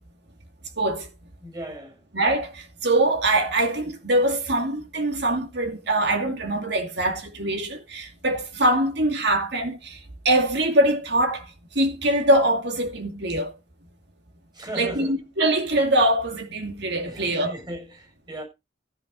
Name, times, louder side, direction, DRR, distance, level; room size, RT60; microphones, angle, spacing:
voice 1, 0.8-1.1 2.1-10.0 10.2-11.5 11.7-13.5 14.8-17.5, right 1 dB, 65° right, 2.5 m, -23 dB
voice 2, 1.4-2.0 14.5-15.1 17.0-18.4, right 1 dB, 25° right, 7.0 m, -37 dB
15.0 x 6.1 x 5.3 m
head